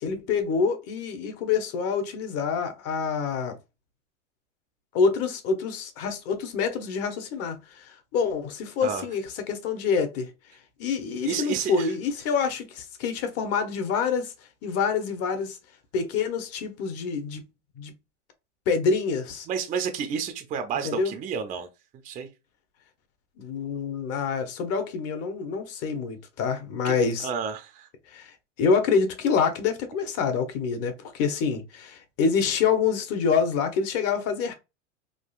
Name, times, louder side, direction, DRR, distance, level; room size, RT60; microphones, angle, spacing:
voice 1, 0.0-3.6 4.9-9.2 9.5-10.3 10.8-14.3 14.6-15.6 15.9-17.4 17.8-17.9 18.7-19.5 20.8-21.1 23.4-27.3 28.1-34.5, left 5 dB, 40° left, 0.9 m, -26 dB
voice 2, 11.2-11.9 19.5-21.7 22.0-22.3 26.8-27.9, right 7 dB, 20° right, 0.4 m, -31 dB
3.7 x 2.4 x 2.3 m
hypercardioid pair, 110°, 37 cm